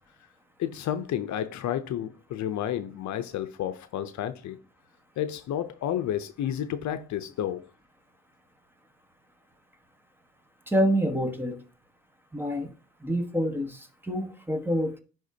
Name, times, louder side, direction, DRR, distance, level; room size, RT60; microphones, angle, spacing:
voice 1, 0.6-4.6 5.2-7.7, left 10 dB, 70° left, 0.6 m, -31 dB
voice 2, 10.7-11.6 12.3-12.7 13.0-15.0, equal, 5° right, 1.2 m, -27 dB
10.5 x 3.6 x 2.7 m
cardioid pair, 90°, 30 cm